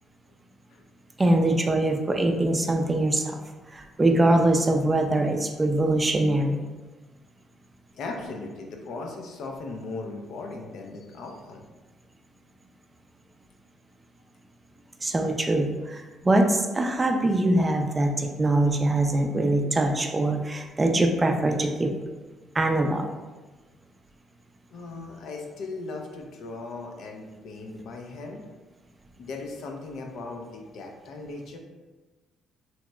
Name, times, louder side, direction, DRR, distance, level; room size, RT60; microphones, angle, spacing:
voice 1, 1.2-3.4 3.7-6.6 15.0-21.9 22.5-23.0, right 1 dB, 25° right, 4 dB, 0.4 m, -23 dB
voice 2, 7.9-11.6 24.7-28.4 29.2-31.6, left 3 dB, 70° left, 2 dB, 0.4 m, -38 dB
2.9 x 2.8 x 2.2 m, 1.2 s
supercardioid pair, 75°, 0 cm